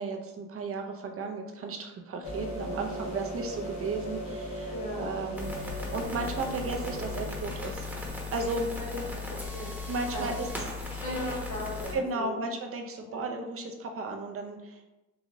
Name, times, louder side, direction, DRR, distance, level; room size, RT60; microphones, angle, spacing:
voice 1, 0.0-7.9 8.3-8.7 9.9-10.5 11.9-14.8, right 3 dB, 50° right, 3 dB, 0.6 m, -34 dB
sound 1, 2.2-7.3, equal, 65° left, 1.1 m, -37 dB
voice 2, 4.7-5.1 8.7-9.7 10.1-10.4 11.0-12.4 13.0-13.2, left 1 dB, 85° left, -5 dB, 1.5 m, -37 dB
sound 2, 5.4-12.0, left 3 dB, 5° right, 0.9 m, -37 dB
3.9 x 2.4 x 3.0 m, 0.98 s
cardioid pair, 90°, 30 cm